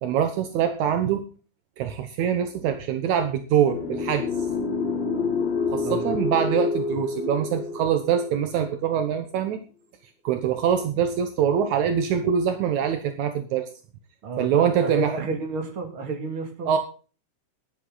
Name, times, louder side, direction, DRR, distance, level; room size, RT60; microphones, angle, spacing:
voice 1, 0.0-1.2 1.8-4.3 5.7-9.6 10.2-13.7 14.4-15.1 16.7-16.8, right 8 dB, 75° right, 7 dB, 2.4 m, -24 dB
sound 1, 3.6-8.7, left 4 dB, 65° left, 3.2 m, -28 dB
voice 2, 14.2-16.7, right 3 dB, 45° right, 4 dB, 3.1 m, -31 dB
13.0 x 11.0 x 3.9 m, 0.36 s
omnidirectional pair, 3.4 m